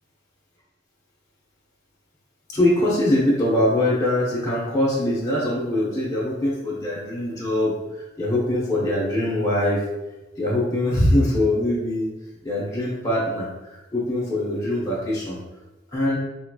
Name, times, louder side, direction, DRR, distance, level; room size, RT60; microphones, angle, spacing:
voice 1, 2.5-9.8 10.4-12.1 12.4-15.4 15.9-16.2, left 1 dB, 15° left, -7 dB, 0.9 m, -23 dB
3.6 x 3.2 x 2.3 m, 1.1 s
head